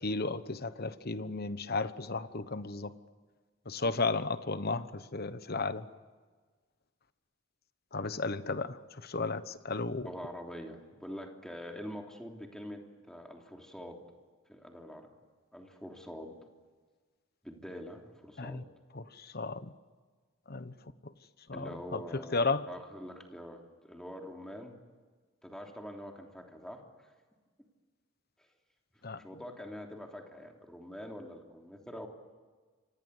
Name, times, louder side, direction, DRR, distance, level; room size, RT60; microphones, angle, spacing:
voice 1, 0.0-2.9 3.7-5.9 7.9-10.1 18.4-18.6 18.9-19.7 20.5-20.7 21.5-22.7 29.0-29.2, left 3 dB, 50° left, 13 dB, 1.1 m, -34 dB
voice 2, 10.0-14.1 14.5-15.1 15.5-16.4 17.4-18.6 21.5-24.9 25.4-27.1 28.4-28.5 29.1-32.1, equal, 5° left, 2 dB, 3.2 m, -45 dB
29.0 x 25.5 x 8.2 m, 1.5 s
head